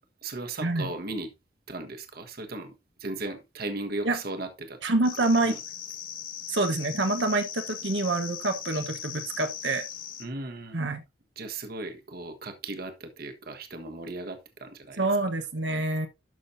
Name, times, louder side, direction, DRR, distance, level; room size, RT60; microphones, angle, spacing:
voice 1, 0.2-1.3 1.7-2.7 3.0-4.8 5.4-5.6 10.2-10.9 11.4-15.1, right 2 dB, 55° right, 1.3 m, -36 dB
voice 2, 4.8-5.6 6.5-9.8 10.7-11.0 15.0-16.1, right 2 dB, 90° right, 1.2 m, -26 dB
sound 1, 5.0-10.2, left 10 dB, 50° left, 1.5 m, -39 dB
12.5 x 6.0 x 2.7 m
head